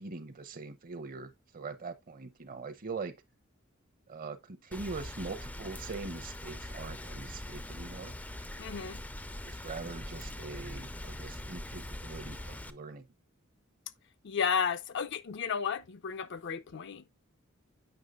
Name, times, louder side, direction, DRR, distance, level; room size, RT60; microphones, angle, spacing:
voice 1, 0.0-3.2 4.1-8.1 9.5-13.1, right 4 dB, 45° right, 0.7 m, -42 dB
Rain, 4.7-12.7, left 1 dB, 10° left, 0.4 m, -42 dB
voice 2, 8.6-9.0 14.2-17.1, left 6 dB, 60° left, 0.6 m, -33 dB
8.0 x 5.6 x 2.3 m
head